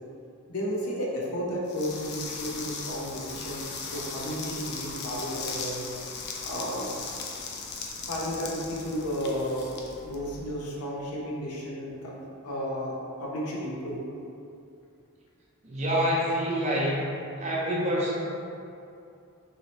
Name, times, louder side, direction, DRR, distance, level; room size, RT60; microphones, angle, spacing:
voice 1, 0.5-5.9 6.4-6.9 8.1-9.7 10.0-14.0, equal, 85° left, -3 dB, 0.6 m, -33 dB
sound 1, 1.7-10.7, left 4 dB, 50° left, 0.4 m, -38 dB
voice 2, 15.6-17.0 17.4-18.2, equal, 30° right, -5 dB, 0.5 m, -26 dB
3.1 x 2.8 x 2.8 m, 2.6 s
head